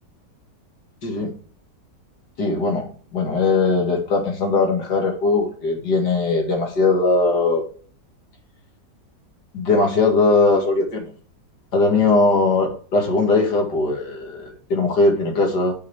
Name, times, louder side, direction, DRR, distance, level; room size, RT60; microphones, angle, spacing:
voice 1, 1.0-1.3 2.4-7.6 9.5-11.1 11.7-15.7, left 3 dB, 65° left, 3 dB, 2.5 m, -20 dB
8.1 x 5.0 x 4.6 m, 0.42 s
omnidirectional pair, 1.9 m